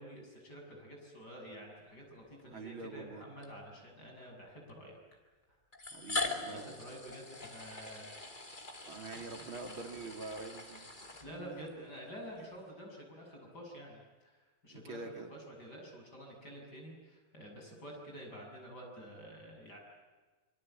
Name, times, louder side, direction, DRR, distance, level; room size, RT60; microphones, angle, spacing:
voice 1, 0.0-5.0 6.5-8.1 9.1-9.3 11.2-19.8, equal, 45° left, 0 dB, 7.7 m, -49 dB
sound 1, 2.3-2.4 3.4-3.5 4.7-4.8 5.7-11.7, left 3 dB, 20° left, 2.7 m, -42 dB
voice 2, 2.4-3.3 5.9-6.8 8.9-10.8 11.3-11.7 14.7-15.3, right 3 dB, 65° right, 5 dB, 3.4 m, -45 dB
25.5 x 23.5 x 8.9 m, 1.3 s
omnidirectional pair, 2.4 m